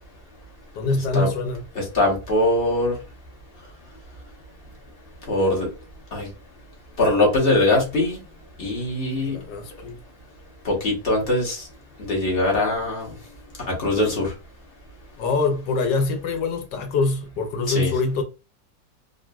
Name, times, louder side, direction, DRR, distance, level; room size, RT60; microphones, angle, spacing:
voice 1, 0.7-1.6 9.2-10.0 15.2-18.2, left 3 dB, 80° left, 1.4 m, -24 dB
voice 2, 1.7-2.9 5.3-5.7 6.1-6.3 7.0-8.2 8.6-9.4 10.6-11.6 12.0-13.1 13.7-14.3 17.7-17.9, left 2 dB, 35° left, 1.3 m, -22 dB
3.8 x 2.5 x 2.3 m
omnidirectional pair, 1.8 m